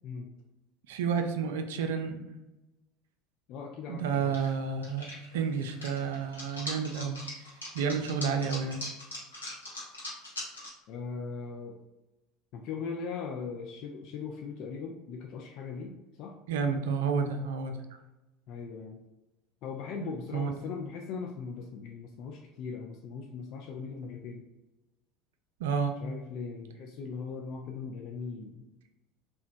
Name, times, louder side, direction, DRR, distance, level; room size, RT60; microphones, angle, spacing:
voice 1, 0.9-2.2 3.9-7.5 7.7-8.8 16.5-17.8 20.0-20.5 25.6-25.9, right 6 dB, 65° right, 5 dB, 0.3 m, -31 dB
voice 2, 3.5-4.3 10.9-11.8 12.5-16.4 18.5-19.0 19.6-24.4 26.0-28.7, left 5 dB, 55° left, 1 dB, 0.3 m, -39 dB
sound 1, 4.1-4.5 4.8-10.7, left 1 dB, 85° left, 0.8 m, -41 dB
2.8 x 2.2 x 2.5 m, 1.0 s
figure-of-eight pair, 70°, 0 cm